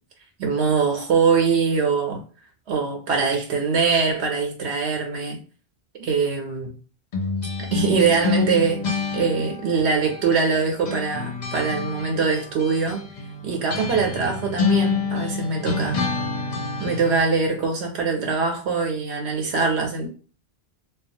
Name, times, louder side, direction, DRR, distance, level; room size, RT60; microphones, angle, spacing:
voice 1, 0.4-2.2 2.7-5.4 6.0-6.7 7.7-8.8 9.1-13.0 13.4-16.0 16.8-20.1, right 5 dB, 85° right, 0.9 m, -22 dB
sound 1, 7.1-10.6 10.8-17.2, left 4 dB, 50° left, 0.6 m, -28 dB
2.3 x 2.3 x 2.7 m
omnidirectional pair, 1.1 m